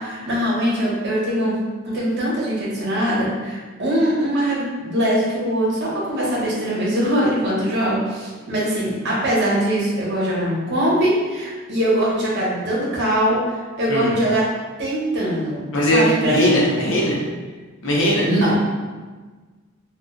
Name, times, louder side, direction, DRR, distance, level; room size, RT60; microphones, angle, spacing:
voice 1, 0.0-1.6 1.8-14.4 14.8-16.6 18.2-18.7, equal, 55° right, -6 dB, 0.9 m, -22 dB
voice 2, 15.7-17.2 17.8-18.3, equal, 65° left, -4 dB, 0.8 m, -19 dB
2.4 x 2.2 x 3.7 m, 1.4 s
head